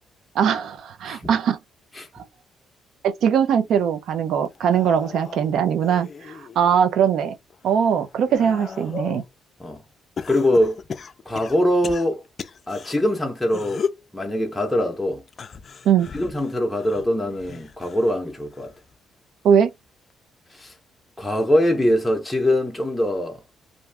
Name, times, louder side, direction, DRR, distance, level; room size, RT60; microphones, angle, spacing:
voice 1, 0.4-1.6 2.1-2.2 3.0-7.3 7.6-9.2 15.8-16.1 19.4-19.7, right 8 dB, 75° right, 0.5 m, -21 dB
sound 1, 4.5-6.8 7.3-9.3 10.2-13.0 13.5-14.1 15.3-18.2 18.5-18.9 20.1-20.2, left 6 dB, 45° left, 0.4 m, -36 dB
voice 2, 10.3-10.8 11.3-12.2 12.7-13.8 14.1-15.2 16.1-18.7 20.5-20.7 21.2-23.4, left 1 dB, 10° left, 0.7 m, -22 dB
2.6 x 2.3 x 3.3 m
cardioid pair, 90°, 0 cm